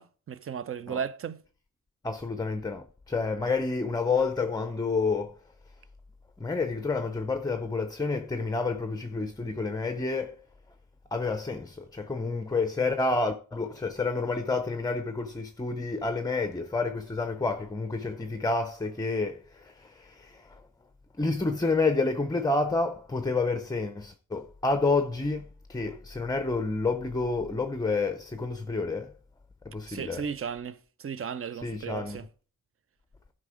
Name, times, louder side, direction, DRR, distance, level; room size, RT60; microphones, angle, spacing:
voice 1, 0.0-1.4 29.9-32.3, right 7 dB, 40° right, 0.5 m, -35 dB
voice 2, 2.0-5.4 6.4-10.4 11.1-20.6 21.2-29.1 29.6-30.2 31.6-32.2, left 3 dB, 10° left, 0.6 m, -29 dB
12.0 x 5.0 x 4.9 m
wide cardioid pair, 115°, 33 cm